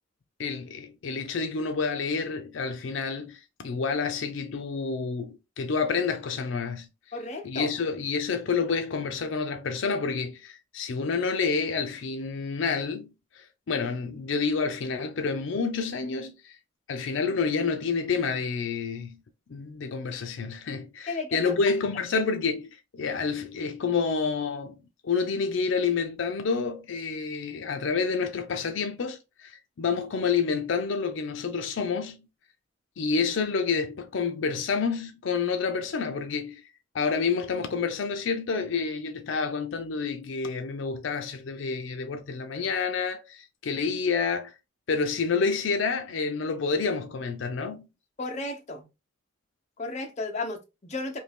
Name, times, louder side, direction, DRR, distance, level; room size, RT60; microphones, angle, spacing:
voice 1, 0.4-6.9 7.4-16.6 16.9-19.2 19.5-24.8 25.0-32.3 33.0-36.7 36.9-44.5 44.9-47.9, left 5 dB, 75° left, 0.4 m, -29 dB
voice 2, 7.1-7.7 21.1-21.6 48.2-48.9 49.8-51.2, left 3 dB, 35° left, 0.7 m, -34 dB
2.7 x 2.7 x 3.4 m
head